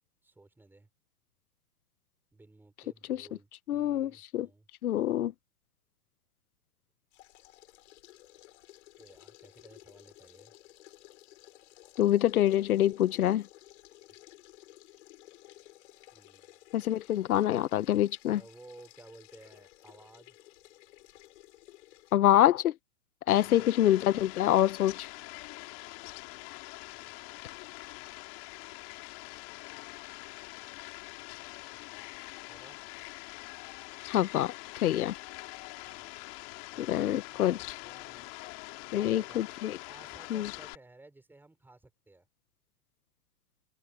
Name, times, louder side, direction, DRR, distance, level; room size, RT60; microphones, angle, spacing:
voice 1, 0.2-0.9 2.3-4.7 9.0-10.5 11.6-11.7 14.1-14.2 16.1-16.5 18.3-20.4 23.3-23.7 26.9-27.5 30.7-32.1 32.5-32.8 35.8-36.2 36.7-38.3 38.9-39.4 39.8-42.3, right 2 dB, 5° right, 5.2 m, -56 dB
voice 2, 3.7-4.5 4.8-5.3 12.0-13.5 16.7-18.4 22.1-22.7 23.3-25.1 34.1-34.5 34.8-35.1 36.8-37.6 38.9-39.8 40.3-40.5, left 12 dB, 90° left, 1.0 m, -26 dB
sound 1, 7.1-22.1, left 16 dB, 55° left, 7.5 m, -56 dB
Fowl, 23.3-40.8, left 27 dB, 40° left, 3.2 m, -44 dB
hypercardioid pair, 150°, 42 cm